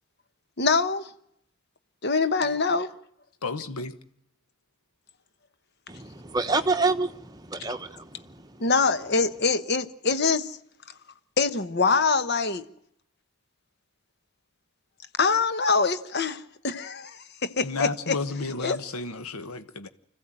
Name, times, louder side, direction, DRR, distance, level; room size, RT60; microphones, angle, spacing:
voice 1, 0.6-1.1 2.0-2.9 8.6-10.6 11.4-12.6 15.2-18.2 18.6-18.8, left 4 dB, 45° left, 1.1 m, -24 dB
voice 2, 3.4-3.9 17.6-19.9, left 3 dB, 85° left, 1.2 m, -32 dB
voice 3, 5.9-8.6, right 3 dB, 20° right, 1.1 m, -28 dB
26.0 x 15.5 x 9.0 m
head